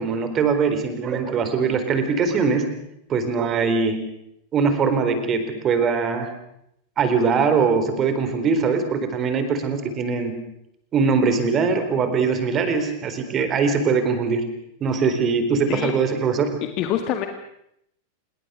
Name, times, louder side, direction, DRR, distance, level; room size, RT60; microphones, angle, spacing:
voice 1, 0.0-2.7 3.1-4.0 4.5-6.3 7.0-10.4 10.9-14.5 14.8-16.5, right 5 dB, 30° right, 9 dB, 4.1 m, -21 dB
voice 2, 16.8-17.3, left 10 dB, 40° left, 6 dB, 1.9 m, -24 dB
27.0 x 22.0 x 6.5 m, 0.77 s
figure-of-eight pair, 90°, 0 cm